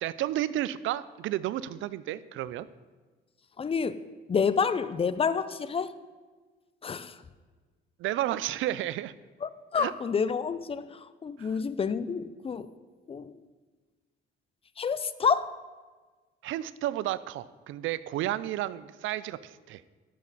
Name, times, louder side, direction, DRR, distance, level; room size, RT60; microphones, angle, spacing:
voice 1, 0.0-2.7 8.0-9.1 9.7-9.9 11.4-11.6 16.4-19.8, right 13 dB, 80° right, 17 dB, 0.4 m, -32 dB
voice 2, 3.6-4.0 4.3-5.9 6.8-7.2 9.4-12.7 13.1-13.3 14.8-15.5, left 6 dB, 30° left, 14 dB, 0.5 m, -29 dB
12.5 x 6.5 x 4.1 m, 1.4 s
cardioid pair, 90°, 20 cm